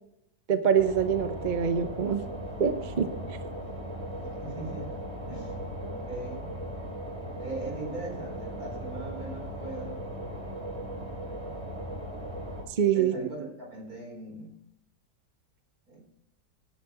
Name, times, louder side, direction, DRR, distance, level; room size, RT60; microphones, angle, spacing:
voice 1, 0.5-2.3 2.6-3.4 12.8-13.1, right 7 dB, 40° right, 9 dB, 0.7 m, -25 dB
sound 1, 0.7-12.6, right 1 dB, 20° right, 2.9 m, -38 dB
voice 2, 4.2-4.9 5.3-5.5 5.8-6.5 7.4-10.2 12.9-14.5 15.9-16.0, right 2 dB, 60° right, 0 dB, 4.4 m, -39 dB
16.0 x 10.0 x 3.0 m, 0.80 s
omnidirectional pair, 1.8 m